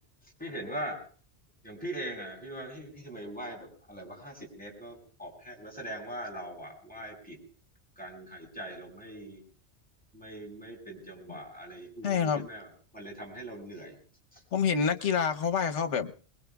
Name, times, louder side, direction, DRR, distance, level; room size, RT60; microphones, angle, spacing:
voice 1, 0.2-1.0 1.6-7.4 8.0-9.4 10.1-14.0 14.3-14.4, right 1 dB, 5° left, -2 dB, 6.7 m, -41 dB
voice 2, 12.0-12.5 14.5-16.1, left 6 dB, 80° left, 7 dB, 1.3 m, -27 dB
28.5 x 21.5 x 2.3 m, 0.42 s
omnidirectional pair, 1.2 m